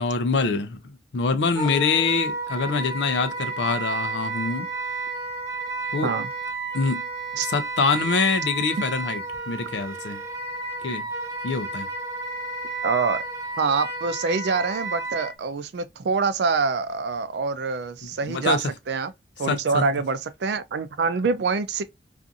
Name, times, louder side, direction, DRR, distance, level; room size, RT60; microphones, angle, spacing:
voice 1, 0.0-4.7 5.9-6.1 6.7-7.0 7.4-10.2 10.8-11.1 11.4-11.9 18.2-18.6 19.5-19.9, left 4 dB, 85° left, 0.5 m, -25 dB
Wind instrument woodwind instrument, 1.6-15.3, right 3 dB, 20° right, 0.6 m, -32 dB
voice 2, 12.8-13.2 13.6-19.1 19.4-21.8, right 4 dB, 80° right, 0.4 m, -25 dB
2.5 x 2.4 x 2.5 m
head